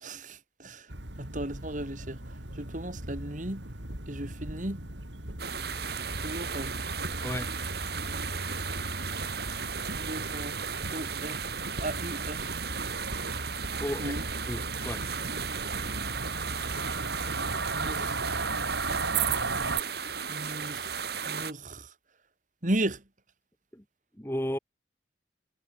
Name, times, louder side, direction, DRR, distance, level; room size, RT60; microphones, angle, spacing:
voice 1, 0.0-0.9 1.2-2.2 2.6-3.6 4.1-4.8 6.2-6.7 9.9-10.5 10.9-11.4 11.8-12.5 14.0-14.2 17.7-18.2 20.3-21.0 21.3-21.9 22.6-23.0, right 1 dB, 45° right, 2.9 m, -35 dB
sound 1, 0.9-19.8, right 3 dB, 80° right, 5.2 m, -36 dB
sound 2, 5.4-21.5, right 6 dB, 60° right, 3.7 m, -35 dB
voice 2, 13.8-14.2 14.5-15.0 23.7-23.8 24.2-24.6, equal, 15° left, 2.3 m, -33 dB
head